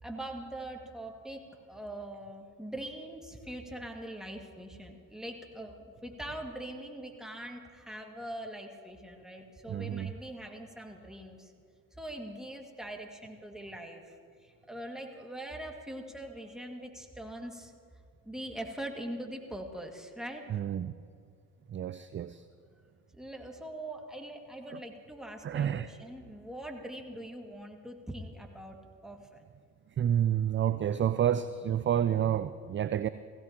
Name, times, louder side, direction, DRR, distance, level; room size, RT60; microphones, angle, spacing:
voice 1, 0.0-1.4 1.7-11.5 12.0-14.1 14.4-17.7 18.2-20.4 23.1-29.5, right 1 dB, ahead, 2 dB, 2.0 m, -42 dB
voice 2, 9.7-10.1 20.5-20.9 21.7-22.4 24.7-24.8 25.4-25.9 30.0-33.1, right 10 dB, 30° right, 13 dB, 0.4 m, -29 dB
18.5 x 16.0 x 2.9 m, 2.2 s
hypercardioid pair, 50°, 42 cm